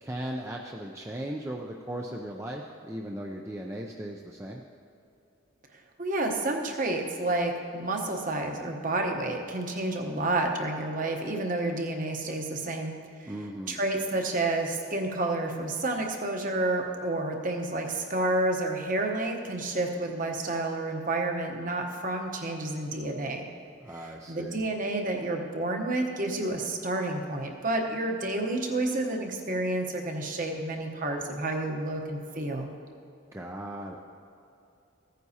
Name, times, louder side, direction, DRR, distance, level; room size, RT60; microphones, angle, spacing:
voice 1, 0.0-4.6 13.2-13.8 23.8-24.6 33.3-34.0, right 1 dB, 15° right, 0 dB, 0.4 m, -37 dB
voice 2, 6.0-13.3 13.7-23.5 23.9-32.7, right 2 dB, 40° right, 3 dB, 0.9 m, -30 dB
15.5 x 9.3 x 2.8 m, 2.6 s
head